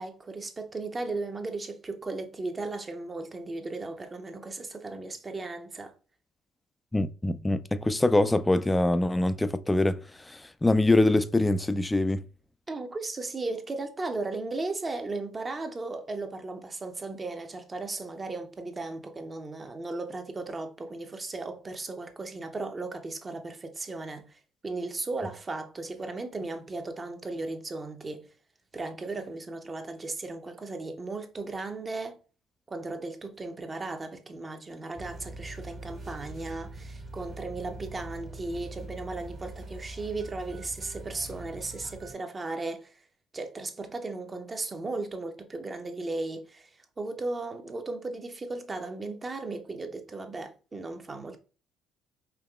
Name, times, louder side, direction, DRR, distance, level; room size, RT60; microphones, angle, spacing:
voice 1, 0.0-5.9 12.7-24.3 24.6-28.3 28.7-32.2 32.7-43.0 43.3-46.7 47.0-51.4, right 3 dB, 30° right, 0.7 m, -36 dB
voice 2, 6.9-12.2, left 2 dB, 15° left, 0.4 m, -24 dB
sound 1, 34.9-42.1, right 2 dB, 45° right, 1.7 m, -43 dB
4.7 x 2.9 x 2.3 m
hypercardioid pair, 60°, 0 cm